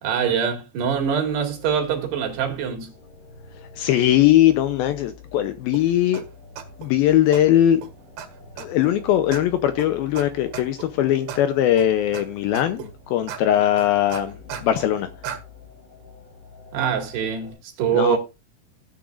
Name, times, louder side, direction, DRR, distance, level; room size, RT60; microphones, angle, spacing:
voice 1, 0.0-2.9 16.7-18.2, right 8 dB, 75° right, 4.2 m, -24 dB
sound 1, 0.8-17.5, left 4 dB, 60° left, 8.6 m, -46 dB
voice 2, 3.8-6.2 6.8-7.8 8.6-14.3 14.6-15.1 17.9-18.2, left 12 dB, 75° left, 2.3 m, -20 dB
sound 2, 5.7-5.8 6.1-6.2 6.6-6.9 7.3-7.4 7.8-7.9 8.2-8.3 8.6-8.9 9.3-9.4 9.8-9.9 10.2-10.3 10.5-10.9 11.3-11.4 11.8-12.2 12.5-12.9 13.3-13.4 13.8-14.9 15.2-15.4, right 8 dB, 90° right, 3.9 m, -34 dB
16.5 x 9.0 x 2.5 m
omnidirectional pair, 4.9 m